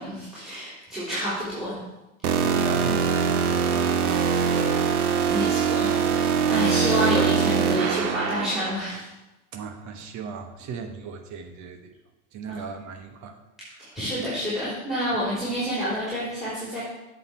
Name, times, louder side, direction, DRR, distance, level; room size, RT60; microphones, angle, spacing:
voice 1, 0.0-1.8 5.3-9.1 12.5-12.6 13.8-16.8, equal, ahead, -9 dB, 3.2 m, -29 dB
sound 1, 2.2-8.7, right 6 dB, 85° right, 1.0 m, -23 dB
voice 2, 2.4-4.5 9.5-12.0 12.3-13.4 13.7-14.0 15.1-15.2, right 6 dB, 40° right, 7 dB, 1.2 m, -37 dB
7.7 x 6.6 x 4.3 m, 1.0 s
supercardioid pair, 115°, 44 cm